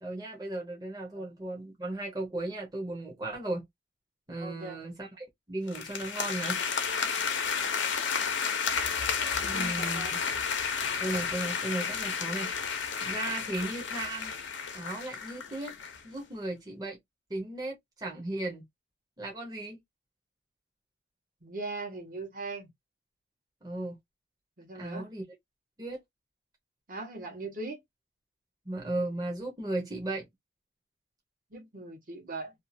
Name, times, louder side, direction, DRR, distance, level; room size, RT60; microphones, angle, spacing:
voice 1, 0.0-3.6 4.3-6.6 9.4-10.0 11.0-12.5 13.0-14.3 14.7-15.7 16.0-17.0 17.3-18.6 19.2-19.8 23.6-24.0 24.8-25.2 25.8-26.0 28.7-30.3, right 2 dB, 20° right, 0.9 m, -35 dB
voice 2, 4.4-4.8 9.4-10.1 21.4-22.7 24.6-25.1 26.9-27.8 31.5-32.5, right 3 dB, 50° right, 1.1 m, -40 dB
sound 1, 5.7-16.0, left 6 dB, 80° left, 0.7 m, -32 dB
2.7 x 2.4 x 2.6 m
head